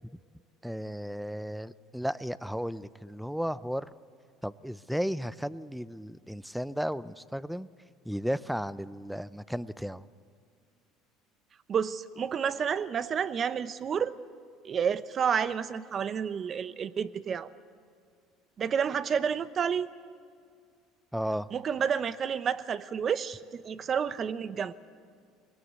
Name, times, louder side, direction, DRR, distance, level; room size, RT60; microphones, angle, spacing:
voice 1, 0.6-3.9 4.4-7.7 8.0-10.1 21.1-21.5, equal, ahead, 17 dB, 0.6 m, -34 dB
voice 2, 11.7-14.1 14.6-17.5 18.6-19.9 21.5-24.7, right 7 dB, 40° right, 15 dB, 0.9 m, -30 dB
23.0 x 19.5 x 8.2 m, 2.2 s
supercardioid pair, 85°, 0 cm